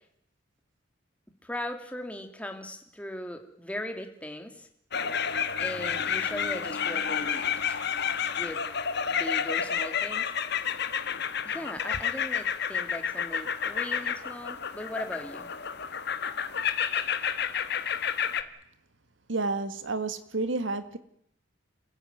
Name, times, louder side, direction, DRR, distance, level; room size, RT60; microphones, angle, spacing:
voice 1, 1.4-4.7 5.6-7.8 8.4-8.6 9.1-10.3 11.4-15.5, left 1 dB, 5° left, 2.7 m, -38 dB
sound 1, 4.9-18.4, left 7 dB, 60° left, 1.5 m, -30 dB
voice 2, 19.3-21.0, right 3 dB, 70° right, 1.9 m, -30 dB
28.0 x 15.0 x 9.4 m
head